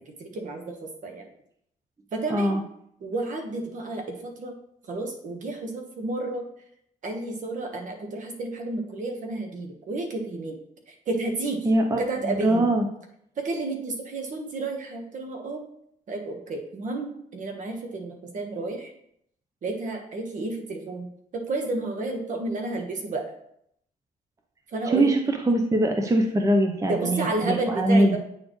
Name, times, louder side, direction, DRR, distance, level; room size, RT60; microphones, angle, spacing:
voice 1, 0.1-1.3 2.1-2.6 3.0-4.5 4.9-6.5 7.0-10.6 10.9-11.7 12.0-12.7 13.4-15.6 16.1-18.9 19.6-23.3 24.7-25.1 26.8-28.2, right 2 dB, 55° right, 3 dB, 1.3 m, -31 dB
voice 2, 2.3-2.6 11.6-12.9 24.9-28.2, right 1 dB, 20° right, 4 dB, 0.7 m, -22 dB
8.5 x 4.3 x 3.1 m, 0.72 s
cardioid pair, 95°, 15 cm